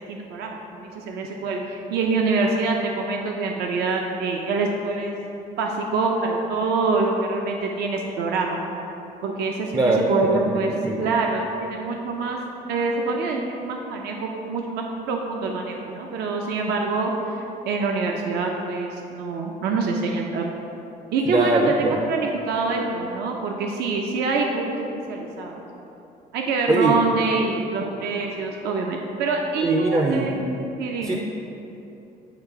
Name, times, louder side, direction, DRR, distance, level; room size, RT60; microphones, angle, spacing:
voice 1, 0.0-5.2 5.6-8.6 9.2-9.7 10.1-10.7 11.0-12.4 12.7-20.4 21.1-25.6 26.3-30.3 30.8-31.2, right 3 dB, 80° right, 1 dB, 0.6 m, -25 dB
voice 2, 9.7-11.1 21.3-22.0 26.7-26.9 29.6-30.6 31.0-31.2, right 2 dB, 20° right, 1 dB, 0.4 m, -22 dB
8.8 x 3.2 x 4.7 m, 2.9 s
cardioid pair, 110°, 17 cm